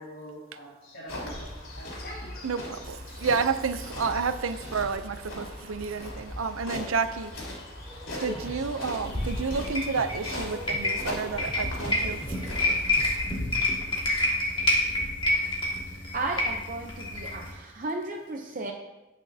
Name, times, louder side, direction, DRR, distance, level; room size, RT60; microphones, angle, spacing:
voice 1, 0.0-1.5 1.7-2.6 8.2-8.3, equal, 50° left, 2.4 m, -42 dB
sound 1, 1.1-13.2, left 1 dB, 85° left, 3.5 m, -39 dB
voice 2, 2.4-7.3 8.2-12.2, right 5 dB, 90° right, 0.5 m, -30 dB
sound 2, 7.9-13.1, equal, ahead, 0.7 m, -45 dB
sound 3, 9.0-17.5, left 1 dB, 25° left, 1.8 m, -28 dB
voice 3, 16.1-18.7, right 2 dB, 40° right, 0.7 m, -34 dB
17.0 x 6.2 x 2.8 m
head